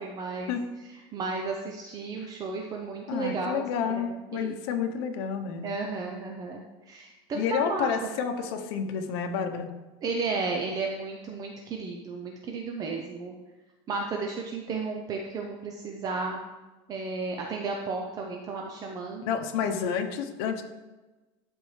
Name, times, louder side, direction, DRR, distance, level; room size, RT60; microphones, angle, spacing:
voice 1, 0.0-0.5 0.8-3.6 3.9-4.5 5.6-7.9 10.0-13.3 13.9-16.4 16.9-19.3, right 4 dB, 30° right, 1 dB, 0.6 m, -33 dB
voice 2, 3.1-5.6 7.3-9.7 19.2-20.6, left 7 dB, 75° left, 6 dB, 0.8 m, -30 dB
12.0 x 4.4 x 3.2 m, 1.2 s
cardioid pair, 160°, 13 cm